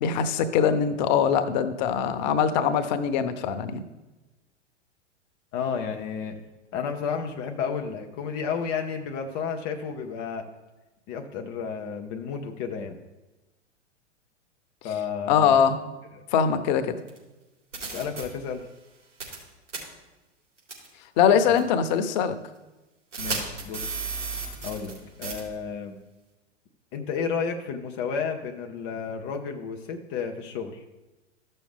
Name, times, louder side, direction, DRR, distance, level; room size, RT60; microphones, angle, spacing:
voice 1, 0.0-3.8 15.3-15.8 16.3-16.9 21.2-22.4, left 7 dB, 40° left, 10 dB, 0.8 m, -22 dB
voice 2, 5.5-6.3 6.7-10.4 11.1-13.0 14.8-15.6 17.9-18.6 21.5-21.7 23.2-24.0 24.6-24.9 25.2-25.9 26.9-30.8, left 6 dB, 15° left, 3 dB, 0.3 m, -32 dB
sound 1, 17.1-17.2 17.7-18.2 19.2-19.4 19.7-19.8 20.7-20.9 21.6-21.7 23.1-25.0 25.2-25.4, right 4 dB, 80° right, 3.7 m, -32 dB
14.0 x 6.4 x 3.5 m, 1.1 s
figure-of-eight pair, 105°, 36 cm